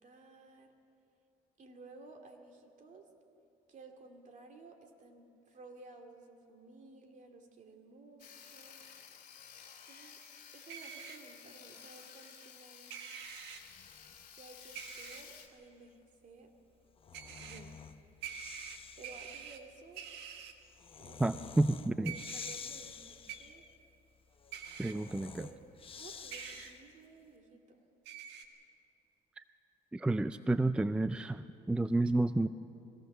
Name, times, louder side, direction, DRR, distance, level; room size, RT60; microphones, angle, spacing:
voice 1, 0.0-0.7 1.6-3.1 3.7-8.8 9.8-10.2 10.5-12.9 14.3-16.5 17.3-17.7 19.0-20.0 21.0-21.4 22.0-23.7 24.9-25.0 25.4-25.6 25.9-27.8, right 3 dB, 50° right, 3 dB, 2.6 m, -55 dB
Sawing, 8.2-15.5, left 7 dB, 50° left, 2.5 m, -54 dB
sound 1, 10.7-11.2 12.9-13.6 14.7-15.2 17.1-17.6 18.2-19.6 19.9-20.5 22.0-22.5 23.3-23.4 24.5-24.9 26.3-26.7 28.1-28.5, right 8 dB, 90° right, 1.6 m, -45 dB
Breathing, 13.5-15.5 16.7-27.0, left 6 dB, 35° left, 0.9 m, -51 dB
voice 2, 21.2-22.1 24.8-25.3 29.4-29.5 29.9-32.5, right 2 dB, 5° right, 12 dB, 0.4 m, -30 dB
22.5 x 17.5 x 6.8 m, 2.8 s
cardioid pair, 110°, 17 cm